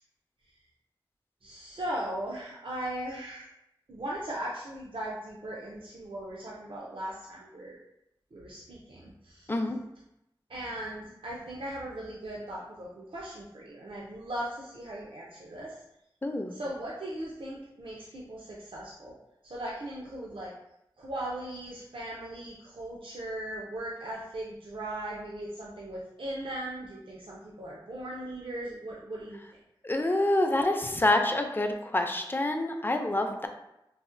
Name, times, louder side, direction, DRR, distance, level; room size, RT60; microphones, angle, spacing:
voice 1, 1.4-3.5 3.9-7.8 8.3-9.5 10.5-15.7 16.5-19.2 19.4-20.5 21.0-29.4, right 1 dB, 75° right, -5 dB, 0.5 m, -38 dB
voice 2, 16.2-16.6 29.8-33.5, left 1 dB, 25° left, 4 dB, 0.4 m, -27 dB
4.0 x 2.0 x 2.5 m, 0.85 s
wide cardioid pair, 50°, 9 cm